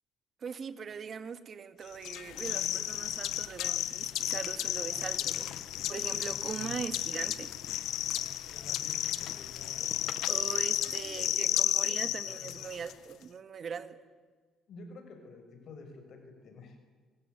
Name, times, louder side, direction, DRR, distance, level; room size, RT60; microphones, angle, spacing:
voice 1, 0.4-5.4 5.9-7.5 10.3-14.0, right 6 dB, 45° right, 11 dB, 2.1 m, -41 dB
sound 1, 2.0-12.9, left 13 dB, 80° left, 1.4 m, -33 dB
voice 2, 4.7-5.4 6.1-6.8 8.5-10.2 10.7-12.1 12.4-12.8 14.7-16.8, left 3 dB, 55° left, 5 dB, 6.2 m, -51 dB
25.5 x 24.0 x 9.4 m, 1.4 s
cardioid pair, 120°, 0 cm